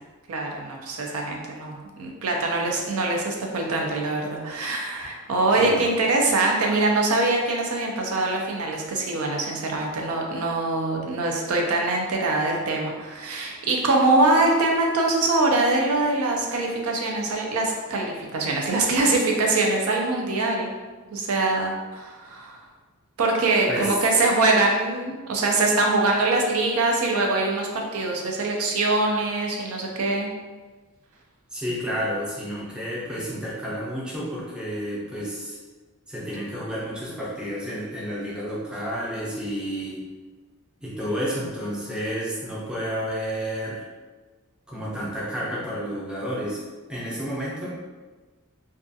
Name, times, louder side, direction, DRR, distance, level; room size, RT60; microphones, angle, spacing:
voice 1, 0.3-20.7 21.1-22.6 23.2-30.3, right 2 dB, 80° right, 0 dB, 0.4 m, -23 dB
voice 2, 31.5-35.6 36.1-40.0 40.8-43.8 44.7-46.6 46.9-47.7, equal, 5° right, -7 dB, 0.5 m, -30 dB
2.3 x 2.3 x 2.6 m, 1.3 s
head